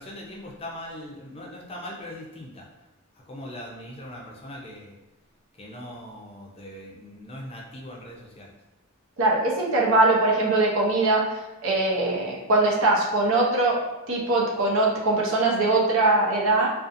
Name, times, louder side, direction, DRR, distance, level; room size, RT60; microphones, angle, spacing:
voice 1, 0.0-2.6 3.3-4.9 5.6-8.5, left 1 dB, 25° left, -2 dB, 0.4 m, -40 dB
voice 2, 9.2-13.8 14.1-16.7, right 2 dB, 70° right, -3 dB, 0.6 m, -22 dB
2.6 x 2.4 x 2.5 m, 1.0 s
head